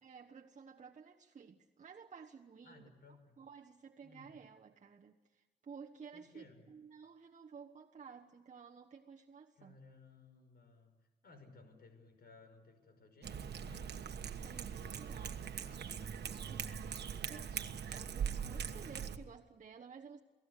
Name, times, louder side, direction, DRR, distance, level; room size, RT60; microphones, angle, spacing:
voice 1, 0.0-9.8 14.3-15.4 16.2-20.2, right 6 dB, 45° right, 1.2 m, -54 dB
voice 2, 2.6-3.4 4.0-4.4 6.1-6.7 9.5-10.9 11.2-13.9 14.8-15.8 17.0-17.8, left 3 dB, 70° left, 5.7 m, -60 dB
Cat, 13.2-19.2, right 7 dB, 85° right, 1.4 m, -41 dB
28.5 x 18.5 x 8.3 m
wide cardioid pair, 145°, 17 cm